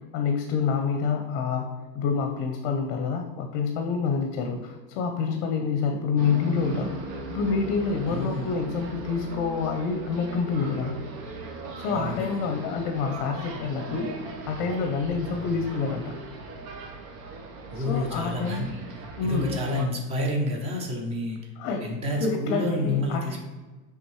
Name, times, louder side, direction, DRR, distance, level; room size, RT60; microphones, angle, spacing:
voice 1, 0.1-7.0 7.3-10.9 11.8-16.1 17.7-18.7 19.2-19.6 21.6-21.9 22.2-23.4, left 5 dB, 45° left, 4 dB, 0.7 m, -27 dB
sound 1, 6.2-19.9, right 3 dB, 65° right, 1.0 m, -39 dB
voice 2, 8.1-8.5 11.9-12.4 17.7-18.7 19.0-21.4 21.8-23.4, left 1 dB, 15° right, 1 dB, 0.6 m, -29 dB
9.9 x 3.5 x 3.1 m, 1.3 s
supercardioid pair, 160°, 46 cm